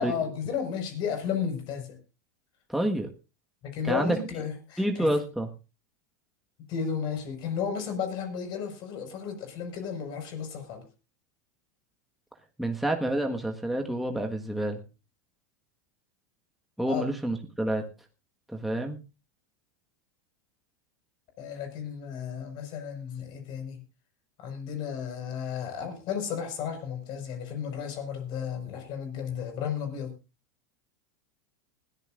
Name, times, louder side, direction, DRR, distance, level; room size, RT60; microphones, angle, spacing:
voice 1, 0.0-2.0 3.6-5.1 6.7-10.8 16.9-17.1 21.4-23.8 24.4-30.1, left 7 dB, 50° left, 6 dB, 5.3 m, -33 dB
voice 2, 2.7-3.1 3.8-4.2 4.8-5.5 12.6-14.8 16.8-17.8 18.5-19.0, right 1 dB, ahead, 2 dB, 1.5 m, -28 dB
20.0 x 13.5 x 2.5 m, 0.30 s
hypercardioid pair, 95°, 10 cm